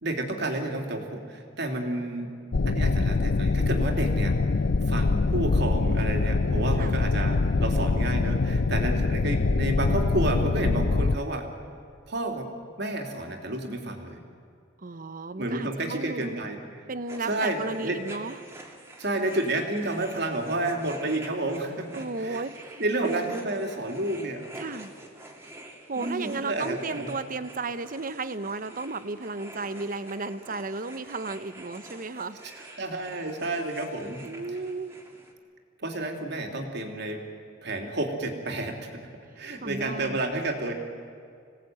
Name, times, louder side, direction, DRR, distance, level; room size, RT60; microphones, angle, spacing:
voice 1, 0.0-2.3 2.7-4.3 4.9-11.5 12.1-12.5 12.8-14.2 15.4-16.6 17.3-18.0 19.0-22.4 22.8-24.4 25.9-27.1 32.8-34.2 35.8-37.2 37.6-39.1 39.4-40.7, right 2 dB, 60° right, 3 dB, 3.2 m, -30 dB
Mothership background sound, 2.5-11.2, left 3 dB, 60° left, 0.6 m, -24 dB
voice 2, 14.8-16.4 16.9-18.4 21.9-23.2 24.5-24.9 25.9-32.4 34.2-34.9 39.6-40.2, right 3 dB, 45° right, 12 dB, 0.9 m, -34 dB
sound 1, 17.1-35.3, right 1 dB, 15° right, 2.7 m, -47 dB
26.5 x 18.0 x 9.4 m, 2.3 s
head